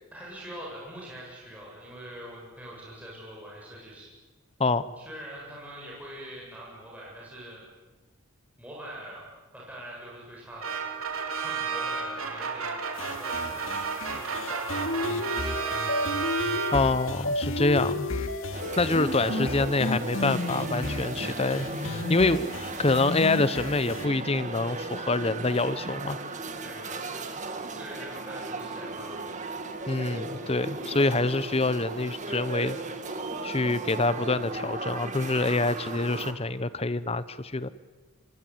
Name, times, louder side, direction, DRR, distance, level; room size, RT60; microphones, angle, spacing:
voice 1, 0.1-4.1 5.0-7.6 8.6-9.3 9.5-10.9 11.3-12.8 13.1-13.8 14.1-15.9 26.6-27.2 27.8-29.3, right 1 dB, 5° right, -5 dB, 7.7 m, -43 dB
sound 1, 10.6-17.1, right 5 dB, 75° right, 3.7 m, -32 dB
sound 2, 13.0-24.1, left 2 dB, 65° left, 2.4 m, -32 dB
voice 2, 16.7-18.1 18.8-22.5 22.8-26.2 29.9-32.8 33.4-37.7, left 3 dB, 30° left, 15 dB, 0.8 m, -26 dB
sound 3, 18.5-36.3, right 3 dB, 35° right, 2.2 m, -36 dB
26.0 x 22.5 x 9.2 m, 1.2 s
head